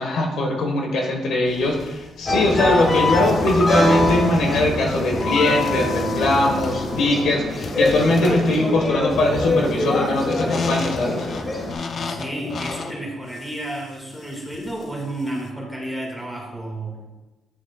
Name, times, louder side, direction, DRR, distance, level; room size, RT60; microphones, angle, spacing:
voice 1, 0.0-11.3, left 2 dB, 75° left, 1 dB, 1.3 m, -21 dB
sound 1, 1.5-15.5, left 4 dB, 50° left, 0.6 m, -34 dB
sound 2, 2.3-11.7, left 1 dB, 35° left, 1.7 m, -23 dB
voice 2, 8.1-8.4 12.0-17.1, right 1 dB, ahead, -1 dB, 1.9 m, -31 dB
9.6 x 6.2 x 2.3 m, 1.1 s
cardioid pair, 90°, 0 cm